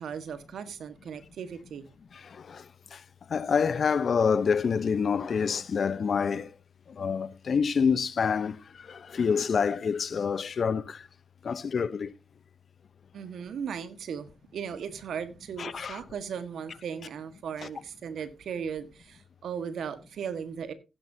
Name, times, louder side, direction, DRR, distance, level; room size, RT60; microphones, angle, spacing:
voice 1, 0.0-1.9 13.1-20.7, right 7 dB, 75° right, 1.6 m, -37 dB
voice 2, 3.3-6.5 7.0-8.6 8.9-11.0 11.4-12.1 15.6-16.0 17.6-17.7, left 6 dB, 60° left, 0.8 m, -27 dB
15.0 x 10.0 x 2.8 m
supercardioid pair, 55°, 0 cm